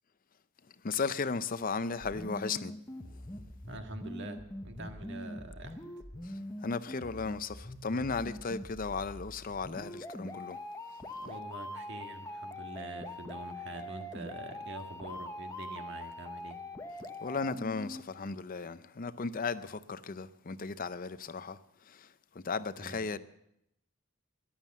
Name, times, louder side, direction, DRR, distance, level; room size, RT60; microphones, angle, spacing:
voice 1, 0.8-2.7 3.1-3.2 6.2-10.6 17.2-23.2, left 4 dB, 40° left, 0.6 m, -36 dB
sound 1, 2.0-18.0, left 1 dB, 15° left, 0.9 m, -43 dB
voice 2, 3.7-5.9 11.1-16.6 22.8-23.1, right 2 dB, 55° right, 1.7 m, -45 dB
14.5 x 11.5 x 7.3 m
head